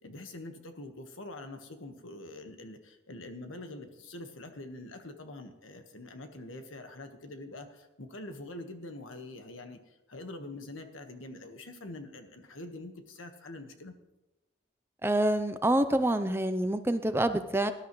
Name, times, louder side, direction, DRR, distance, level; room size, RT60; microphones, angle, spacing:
voice 1, 0.0-14.0, left 2 dB, 90° left, 6 dB, 1.5 m, -45 dB
voice 2, 15.0-17.7, right 1 dB, 10° right, 9 dB, 0.5 m, -27 dB
19.0 x 11.5 x 3.1 m, 0.98 s
head